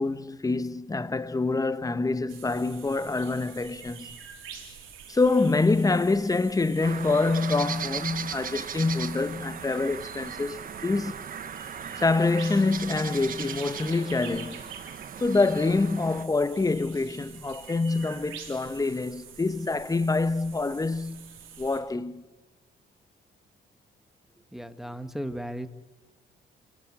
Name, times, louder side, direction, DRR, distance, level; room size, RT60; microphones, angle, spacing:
voice 1, 0.0-4.2 5.1-11.1 12.0-14.6 15.2-22.2, left 3 dB, 20° left, 0.8 m, -26 dB
sound 1, 2.3-21.8, right 7 dB, 85° right, 3.3 m, -46 dB
sound 2, 6.8-16.3, right 7 dB, 45° right, 1.0 m, -38 dB
voice 2, 24.5-25.7, equal, ahead, 1.2 m, -35 dB
28.5 x 11.0 x 8.6 m
cardioid pair, 90°, 20 cm